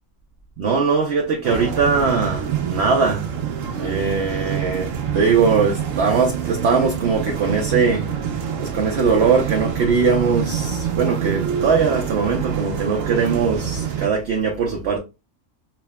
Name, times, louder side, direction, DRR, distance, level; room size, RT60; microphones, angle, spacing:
voice 1, 0.6-3.3 3.7-8.1 8.6-15.0, right 5 dB, 60° right, 0.9 m, -20 dB
sound 1, 1.4-14.1, right 8 dB, 75° right, 1.1 m, -26 dB
5.7 x 2.1 x 2.2 m
omnidirectional pair, 1.4 m